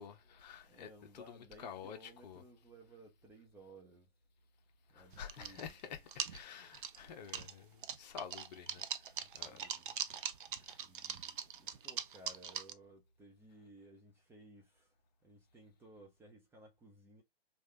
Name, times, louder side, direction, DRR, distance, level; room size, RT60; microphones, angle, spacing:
voice 1, 0.0-2.4 4.9-8.8 9.3-9.6 10.6-10.8, left 7 dB, 45° left, 0.9 m, -49 dB
voice 2, 0.6-4.1 4.9-6.0 9.2-9.9 10.8-14.9 15.2-17.2, right 1 dB, 10° right, 0.8 m, -59 dB
sound 1, 5.1-5.8 6.1-7.5 7.8-12.7, right 8 dB, 55° right, 0.5 m, -41 dB
3.3 x 2.5 x 2.8 m
figure-of-eight pair, 125°, 30 cm